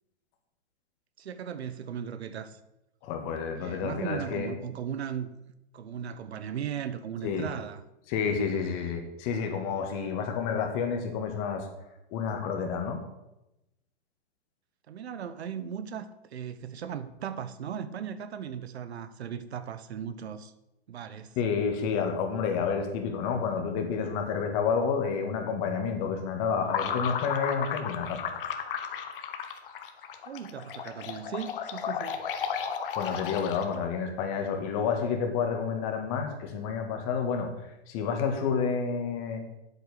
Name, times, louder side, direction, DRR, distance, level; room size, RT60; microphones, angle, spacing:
voice 1, 1.2-2.6 3.6-5.4 5.7-7.8 14.9-20.5 20.9-21.4 30.3-32.2, right 8 dB, 75° right, 1.1 m, -37 dB
voice 2, 3.0-4.5 7.2-7.5 8.1-11.7 12.1-13.0 21.4-28.2 33.0-37.5 37.9-39.4, left 6 dB, 35° left, 2.0 m, -29 dB
sound 1, 26.7-33.9, left 7 dB, 55° left, 1.4 m, -34 dB
8.8 x 8.2 x 6.7 m
hypercardioid pair, 150°, 32 cm